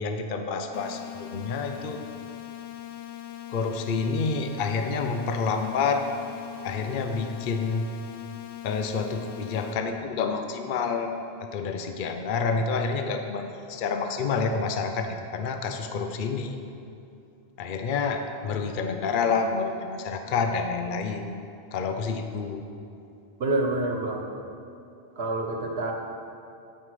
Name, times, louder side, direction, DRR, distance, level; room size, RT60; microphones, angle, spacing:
voice 1, 0.0-2.0 3.5-6.0 6.6-7.9 8.6-11.1 11.4-16.6 17.6-21.4 21.7-22.6, left 4 dB, 55° left, 6 dB, 0.8 m, -28 dB
sound 1, 0.7-9.7, left 13 dB, 85° left, 0.9 m, -40 dB
voice 2, 23.4-24.2 25.2-25.9, right 2 dB, 70° right, 2 dB, 1.4 m, -27 dB
15.5 x 5.6 x 4.9 m, 2.7 s
omnidirectional pair, 1.1 m